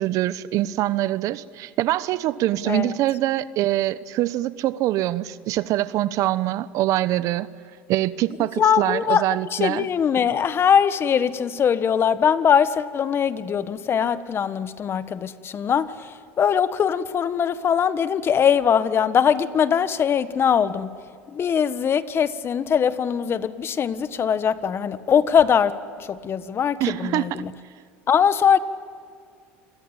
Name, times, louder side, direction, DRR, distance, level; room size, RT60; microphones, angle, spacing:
voice 1, 0.0-7.5 7.9-9.9 26.8-27.4, right 15 dB, 60° right, 1.0 m, -24 dB
voice 2, 2.6-3.0 8.6-9.2 9.5-20.9 21.3-27.5 28.1-28.6, left 8 dB, 40° left, 1.4 m, -21 dB
28.0 x 22.5 x 8.9 m
supercardioid pair, 90°, 6 cm